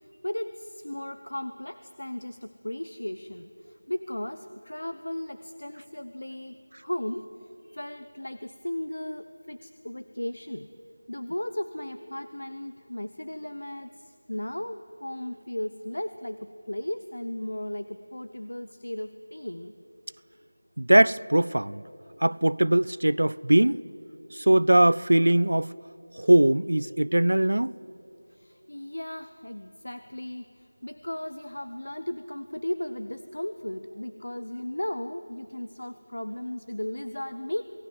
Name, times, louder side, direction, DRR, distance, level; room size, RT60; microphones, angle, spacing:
voice 1, 0.2-10.7 11.1-19.7 28.3-37.6, left 1 dB, 80° left, 11 dB, 1.0 m, -36 dB
voice 2, 20.8-21.8 22.2-23.8 24.3-25.7 26.1-27.7, right 1 dB, 75° right, 21 dB, 0.6 m, -21 dB
28.0 x 19.0 x 7.5 m, 2.9 s
figure-of-eight pair, 175°, 0 cm